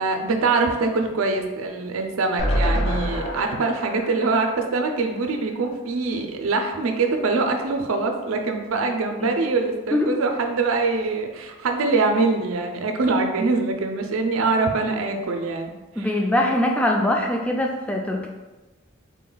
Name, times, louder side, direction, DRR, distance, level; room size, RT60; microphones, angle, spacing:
voice 1, 0.0-16.1, right 3 dB, 85° right, 4 dB, 0.5 m, -24 dB
sound 1, 2.4-5.6 6.0-6.1 6.3-6.4, equal, 55° left, 1.1 m, -27 dB
voice 2, 16.0-18.3, left 1 dB, 5° left, 0 dB, 0.3 m, -22 dB
3.6 x 2.3 x 3.9 m, 1.1 s
head